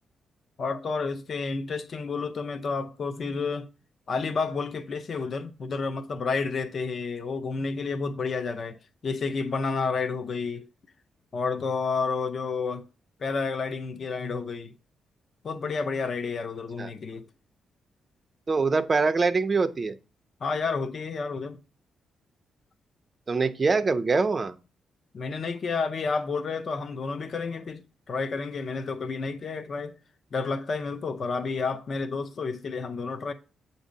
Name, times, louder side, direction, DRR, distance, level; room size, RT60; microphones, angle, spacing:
voice 1, 0.6-3.7 4.1-8.8 9.0-10.7 11.3-12.8 13.2-14.7 15.4-17.3 20.4-21.6 25.1-30.0 30.3-33.3, left 4 dB, 35° left, 0.4 m, -30 dB
voice 2, 18.5-19.9 23.3-24.6, right 4 dB, 25° right, 0.4 m, -24 dB
7.9 x 2.7 x 5.1 m
wide cardioid pair, 175°, 0 cm